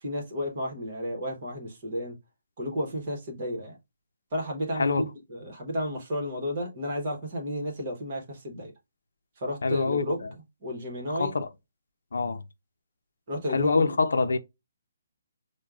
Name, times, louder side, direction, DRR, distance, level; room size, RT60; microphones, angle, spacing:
voice 1, 0.0-2.2 2.6-3.8 4.3-8.7 9.4-10.2 10.6-11.3 13.3-13.9, equal, 30° right, 1.0 m, -32 dB
voice 2, 9.6-10.3 11.2-11.5 12.1-12.4 13.5-14.4, left 4 dB, 75° left, 0.5 m, -25 dB
6.2 x 2.2 x 2.3 m
hypercardioid pair, 180°, 0 cm